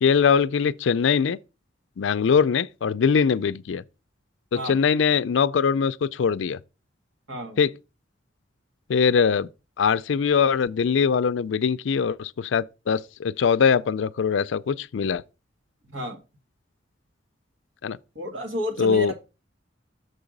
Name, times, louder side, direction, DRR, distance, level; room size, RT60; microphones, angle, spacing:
voice 1, 0.0-1.4 2.0-3.8 4.5-6.6 7.6-7.7 8.9-9.5 9.8-15.2 17.8-18.0 18.8-19.1, left 6 dB, 75° left, 0.4 m, -22 dB
voice 2, 7.3-7.7 15.8-16.2 18.2-19.1, equal, 85° right, 2.0 m, -31 dB
6.7 x 4.8 x 5.2 m
head